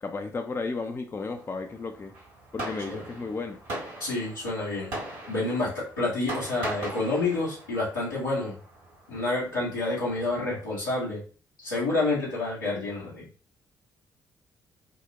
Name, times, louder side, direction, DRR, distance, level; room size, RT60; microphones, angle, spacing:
voice 1, 0.0-2.1 2.5-3.6, left 3 dB, 25° left, 0.4 m, -33 dB
Fireworks, 1.4-10.7, right 1 dB, 80° right, 1.7 m, -41 dB
voice 2, 4.0-4.9 5.3-8.6 9.1-11.2 11.6-13.2, left 2 dB, 85° left, 1.7 m, -28 dB
4.4 x 2.1 x 2.9 m
figure-of-eight pair, 45°, 10 cm